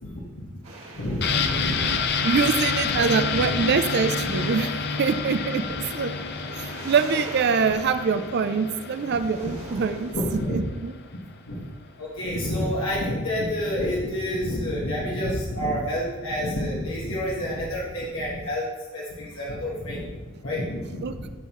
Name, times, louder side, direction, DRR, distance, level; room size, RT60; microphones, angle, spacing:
voice 1, 0.0-0.4 0.9-2.4 2.9-3.0 3.3-3.6 4.2-4.3 5.6-5.7 9.4-9.5 10.1-10.6 11.1-11.2 11.5-11.6 12.0-18.7 18.9-20.2 20.4-21.2, equal, 75° left, -6 dB, 1.5 m, -29 dB
sound 1, 0.6-10.4, right 2 dB, 70° right, 2.0 m, -43 dB
sound 2, 1.2-10.8 11.1-11.2, left 5 dB, 50° left, 0.6 m, -29 dB
voice 2, 2.2-4.7 5.0-6.1 6.5-10.1 10.5-10.9 21.0-21.1, right 5 dB, 50° right, 10 dB, 0.4 m, -24 dB
11.5 x 5.5 x 3.1 m, 1.3 s
head